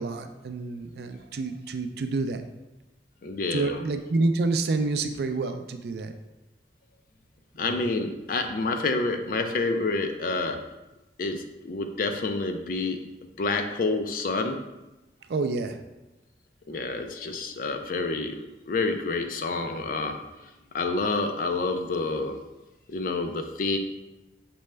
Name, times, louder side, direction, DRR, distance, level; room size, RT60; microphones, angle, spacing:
voice 1, 0.0-2.4 3.5-6.1 7.6-7.7 15.3-15.8, right 3 dB, 60° right, 7 dB, 0.3 m, -28 dB
voice 2, 3.2-3.8 7.6-10.6 11.2-13.0 13.4-14.6 16.7-20.2 20.7-22.4 22.9-23.8, left 3 dB, 50° left, 5 dB, 0.4 m, -28 dB
6.0 x 2.2 x 3.2 m, 1.0 s
head